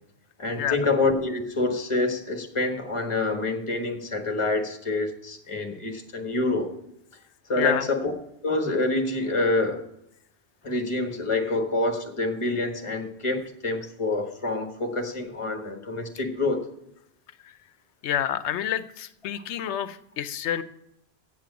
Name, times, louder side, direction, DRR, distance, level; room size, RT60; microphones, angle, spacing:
voice 1, 0.4-6.7 7.5-8.1 8.4-9.9 10.6-16.7, left 2 dB, 30° left, 4 dB, 1.3 m, -27 dB
voice 2, 7.6-7.9 18.0-20.6, left 10 dB, 90° left, 13 dB, 0.9 m, -28 dB
8.1 x 7.6 x 8.2 m, 0.82 s
omnidirectional pair, 1.1 m